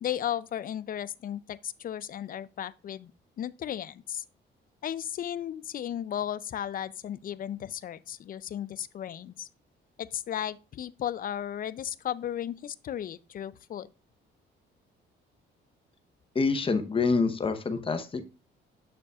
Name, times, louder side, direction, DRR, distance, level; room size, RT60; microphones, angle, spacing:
voice 1, 0.0-3.1 3.4-4.2 4.8-9.5 10.0-13.9, left 10 dB, 45° left, 0.4 m, -35 dB
voice 2, 16.3-18.3, left 4 dB, 25° left, 0.8 m, -26 dB
6.7 x 6.7 x 2.3 m
cardioid pair, 90°, 20 cm